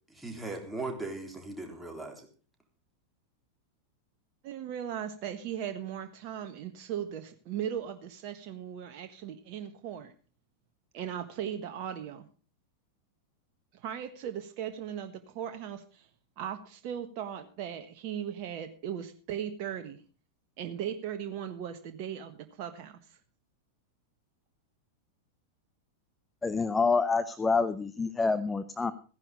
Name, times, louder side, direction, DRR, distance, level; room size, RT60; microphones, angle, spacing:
voice 1, 0.1-2.3, right 2 dB, 5° right, 2 dB, 3.6 m, -38 dB
voice 2, 4.4-10.1 10.9-12.3 13.7-16.1 16.4-20.0 20.6-23.2, right 9 dB, 45° right, 7 dB, 1.4 m, -38 dB
voice 3, 26.4-28.9, left 4 dB, 10° left, 13 dB, 0.8 m, -27 dB
15.5 x 10.5 x 5.2 m, 0.37 s
figure-of-eight pair, 90°, 0 cm